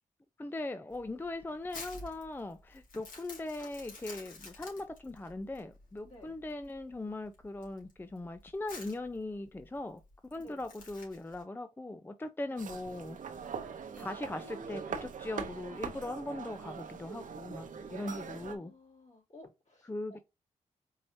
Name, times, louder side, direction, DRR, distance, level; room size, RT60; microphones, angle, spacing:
voice 1, 0.4-10.0 10.3-13.2 14.0-18.7 19.8-20.2, left 2 dB, 15° left, 0.4 m, -40 dB
Crumpling crinkling, 0.9-11.4, left 3 dB, 80° left, 2.1 m, -50 dB
voice 2, 6.0-6.4 10.4-10.6 17.9-20.2, left 1 dB, 55° left, 2.7 m, -56 dB
sound 1, 12.6-18.6, right 6 dB, 70° right, 0.8 m, -42 dB
4.6 x 3.1 x 2.6 m
cardioid pair, 55°, 14 cm